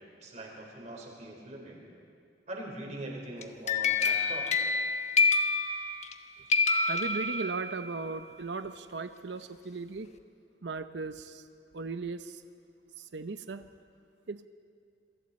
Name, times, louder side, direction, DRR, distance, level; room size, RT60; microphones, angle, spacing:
voice 1, 0.2-1.8 2.5-4.6, right 1 dB, 40° right, -1 dB, 4.4 m, -42 dB
sound 1, 3.4-6.2 6.5-7.8, left 4 dB, 40° left, 1.1 m, -27 dB
voice 2, 6.9-10.1 10.6-11.4 11.7-12.4 13.0-13.7 14.3-14.5, right 3 dB, 75° right, 10 dB, 0.7 m, -37 dB
27.0 x 23.5 x 4.3 m, 2.4 s
head